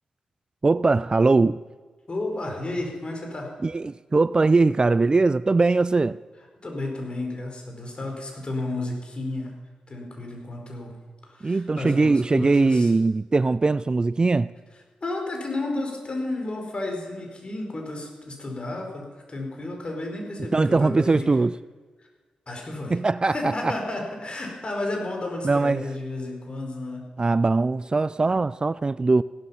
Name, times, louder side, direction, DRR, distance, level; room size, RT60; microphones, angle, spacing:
voice 1, 0.6-1.6 3.6-6.2 11.4-14.5 20.5-21.6 22.9-23.7 25.4-25.8 27.2-29.2, right 3 dB, 35° right, 0.3 m, -21 dB
voice 2, 2.1-3.6 6.6-9.5 9.9-11.0 11.2-12.9 15.0-21.3 22.0-22.1 22.5-23.0 23.2-27.0, left 2 dB, 40° left, 4.5 m, -32 dB
16.0 x 12.0 x 5.7 m
cardioid pair, 50°, 3 cm